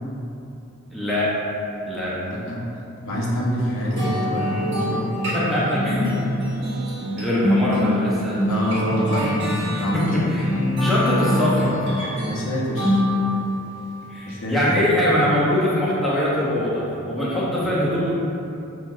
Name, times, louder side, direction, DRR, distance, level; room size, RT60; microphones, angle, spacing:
voice 1, 0.9-1.4 1.9-2.2 5.3-6.2 7.2-8.4 9.9-11.7 14.1-18.1, left 1 dB, ahead, -9 dB, 0.5 m, -22 dB
voice 2, 2.2-2.7 3.0-5.1 8.5-10.0 12.3-13.0 14.2-14.8 17.5-17.6, equal, 65° left, -5 dB, 0.7 m, -26 dB
sound 1, 4.0-13.6, left 1 dB, 55° right, 0.9 m, -24 dB
5.7 x 2.3 x 2.3 m, 2.8 s
head